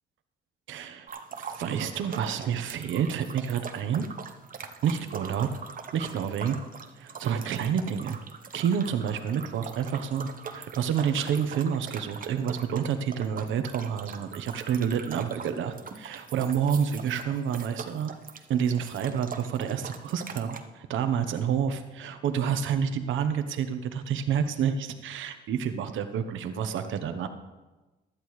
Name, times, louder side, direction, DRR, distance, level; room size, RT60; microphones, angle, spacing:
voice 1, 0.7-1.1 1.4-4.0 4.8-5.6 5.9-6.6 7.0-8.2 8.5-18.2 18.5-27.3, right 8 dB, 75° right, 8 dB, 1.0 m, -29 dB
sound 1, 1.1-20.6, right 5 dB, 45° right, 1.0 m, -42 dB
15.5 x 11.5 x 3.2 m, 1.2 s
cardioid pair, 90°, 20 cm